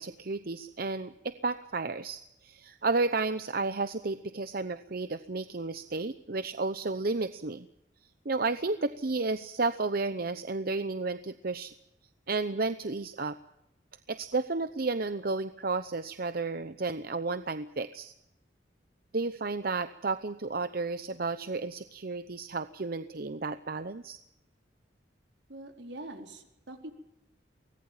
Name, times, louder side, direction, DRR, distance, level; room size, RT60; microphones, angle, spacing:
voice 1, 0.0-7.7 8.2-11.7 12.3-13.4 14.1-18.1 19.1-24.2, right 3 dB, 55° right, 11 dB, 0.8 m, -32 dB
voice 2, 25.5-26.9, right 1 dB, 80° right, 4 dB, 4.1 m, -44 dB
24.0 x 19.0 x 7.4 m, 0.85 s
head